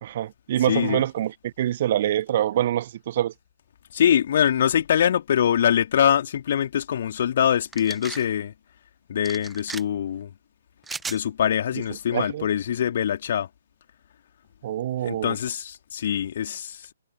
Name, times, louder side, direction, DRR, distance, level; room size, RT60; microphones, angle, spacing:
voice 1, 0.0-3.3 12.1-12.5 14.6-15.4, right 12 dB, 40° right, 1.5 m, -25 dB
voice 2, 0.6-1.0 3.9-8.5 9.1-10.3 11.1-13.5 15.0-16.9, left 9 dB, 45° left, 3.2 m, -23 dB
sound 1, 7.7-8.2 9.2-9.8 10.8-11.2, right 4 dB, 5° right, 1.5 m, -35 dB
figure-of-eight pair, 130°, 0 cm